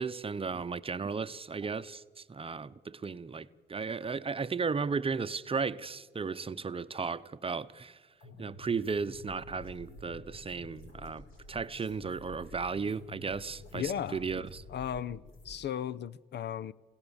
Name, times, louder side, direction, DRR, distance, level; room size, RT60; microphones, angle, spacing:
voice 1, 0.0-8.0 8.4-14.6, right 5 dB, 30° right, 0.8 m, -35 dB
sound 1, 8.2-15.6, left 2 dB, 85° left, 6.3 m, -50 dB
voice 2, 13.7-14.2 14.7-16.7, left 9 dB, 60° left, 0.7 m, -36 dB
28.0 x 16.5 x 7.2 m
cardioid pair, 90°, 20 cm